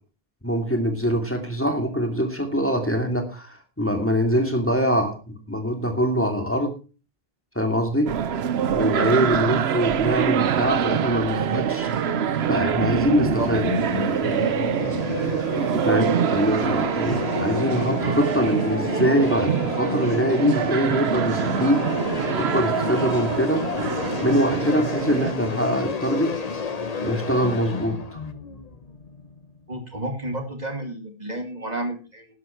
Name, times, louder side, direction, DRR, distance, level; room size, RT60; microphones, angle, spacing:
voice 1, 0.4-6.7 7.5-8.1 8.7-11.9 12.5-13.6 15.8-21.9 22.3-23.6 24.2-26.3 27.0-28.2, equal, 10° left, 4 dB, 2.6 m, -23 dB
sound 1, 8.1-25.3, right 8 dB, 90° right, 1.0 m, -25 dB
sound 2, 11.7-29.6, left 4 dB, 40° left, 1.1 m, -31 dB
voice 2, 29.7-32.3, right 1 dB, 40° right, 4 dB, 2.5 m, -31 dB
12.5 x 11.0 x 4.5 m, 0.34 s
omnidirectional pair, 1.0 m